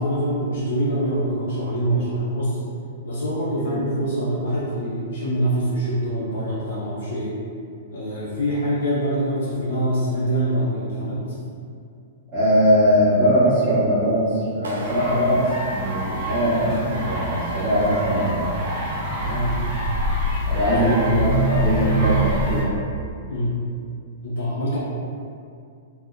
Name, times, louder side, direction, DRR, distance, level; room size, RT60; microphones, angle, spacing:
voice 1, 0.0-2.6 3.0-7.4 7.9-11.2 15.0-15.3 19.1-19.6 20.7-21.2 23.3-23.5 24.2-24.8, right 1 dB, 65° left, -8 dB, 0.5 m, -25 dB
voice 2, 12.3-18.5 20.5-22.7, equal, 20° right, -16 dB, 1.0 m, -21 dB
Clapping, 14.6-16.7, right 1 dB, 80° right, 0.3 m, -37 dB
sound 1, 14.8-22.6, right 1 dB, 40° right, 0.7 m, -25 dB
2.4 x 2.0 x 2.5 m, 2.4 s
hypercardioid pair, 110°, 0 cm